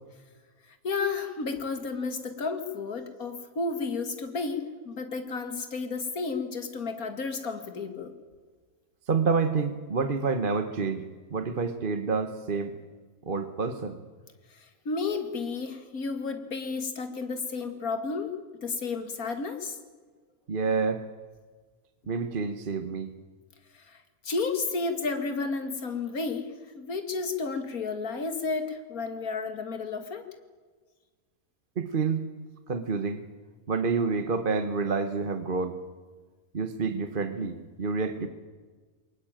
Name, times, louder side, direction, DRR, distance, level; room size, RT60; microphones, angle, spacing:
voice 1, 0.7-8.1 14.5-19.8 23.7-30.3, left 4 dB, 70° left, 8 dB, 2.6 m, -32 dB
voice 2, 9.1-12.8 13.2-14.0 20.5-21.0 22.1-23.1 31.8-32.2 32.7-33.2 33.7-35.8 36.5-38.3, right 4 dB, 40° right, 9 dB, 1.2 m, -28 dB
22.5 x 19.5 x 9.0 m, 1.4 s
omnidirectional pair, 1.6 m